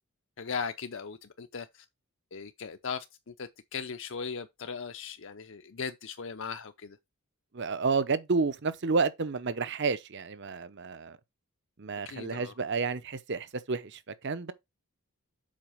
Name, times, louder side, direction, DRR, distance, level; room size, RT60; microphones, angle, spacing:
voice 1, 0.4-1.9 2.3-7.0 12.0-12.5, left 5 dB, 55° left, 0.6 m, -38 dB
voice 2, 7.5-11.2 11.8-14.5, right 4 dB, 50° right, 0.7 m, -30 dB
7.5 x 4.8 x 4.9 m
head